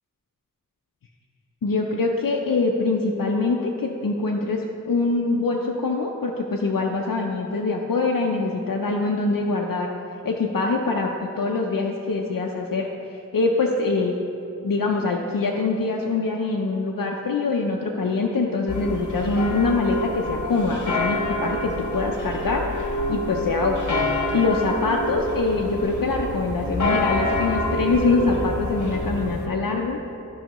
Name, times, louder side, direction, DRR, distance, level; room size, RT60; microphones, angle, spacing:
voice 1, 1.6-9.9 10.2-14.2 14.6-30.0, left 3 dB, 85° left, 0 dB, 0.5 m, -24 dB
sound 1, 18.7-29.5, left 1 dB, 65° left, 0.9 m, -27 dB
12.5 x 5.6 x 3.0 m, 2.8 s
wide cardioid pair, 40°, 33 cm